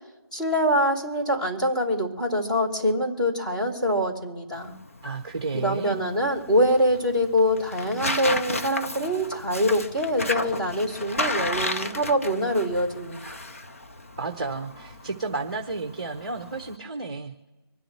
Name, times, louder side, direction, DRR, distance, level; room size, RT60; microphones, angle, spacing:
voice 1, 0.3-4.7 5.5-13.4, equal, 15° left, -5 dB, 3.2 m, -24 dB
Tearing, 4.5-16.8, left 2 dB, 35° left, 0.8 m, -33 dB
voice 2, 5.0-6.0 14.2-17.5, right 3 dB, 15° right, 4 dB, 1.1 m, -32 dB
26.5 x 10.0 x 3.3 m, 1.2 s
figure-of-eight pair, 175°, 13 cm